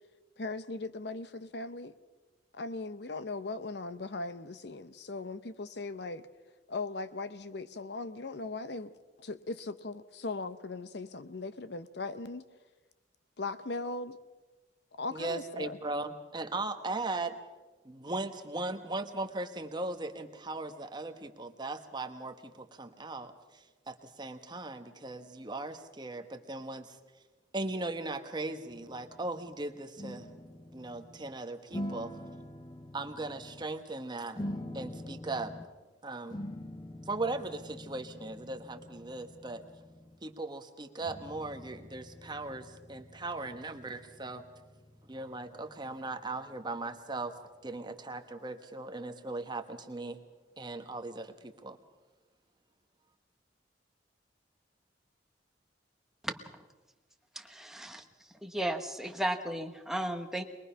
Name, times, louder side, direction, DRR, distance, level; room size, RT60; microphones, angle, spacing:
voice 1, 0.4-1.9 2.5-6.3 6.7-8.9 9.2-12.4 13.4-14.2 15.0-15.8, left 3 dB, 65° left, 13 dB, 0.8 m, -39 dB
voice 2, 15.1-17.4 17.8-27.0 27.5-30.3 30.7-32.1 32.9-34.4 34.7-35.5 36.0-36.4 37.1-39.6 40.2-44.4 45.1-47.3 47.6-50.2 50.6-51.8, right 2 dB, 25° right, 7 dB, 1.2 m, -38 dB
sound 1, 28.7-29.6 30.0-31.3 31.7-33.7 34.4-35.8 36.3-40.3 41.0-47.5, left 1 dB, 25° left, 0.8 m, -45 dB
voice 3, 57.4-58.0 58.4-60.4, right 1 dB, ahead, 5 dB, 1.2 m, -34 dB
22.0 x 21.5 x 5.7 m, 1.2 s
head